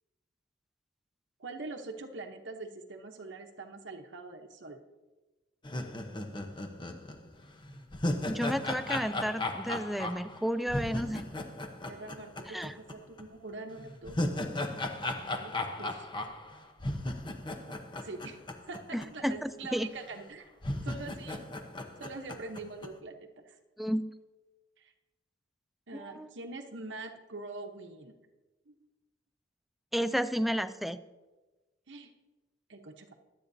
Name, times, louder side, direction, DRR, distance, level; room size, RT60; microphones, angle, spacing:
voice 1, 1.4-4.8 11.9-14.4 15.4-16.1 17.3-17.7 18.0-21.4 22.0-23.6 24.8-24.9 25.9-28.1 28.7-28.8 31.9-32.1 32.7-33.1, right 3 dB, 60° right, 4 dB, 1.0 m, -44 dB
sound 1, 5.6-12.9 13.2-13.3 13.8-19.1 19.3-19.4 20.1-20.2 20.6-22.9, left 1 dB, 25° left, 0.8 m, -36 dB
voice 2, 8.3-11.2 12.5-12.7 18.9-19.9 23.8-24.0 25.9-26.3 29.9-31.0, equal, ahead, 12 dB, 0.3 m, -32 dB
22.0 x 8.6 x 2.7 m, 1.2 s
head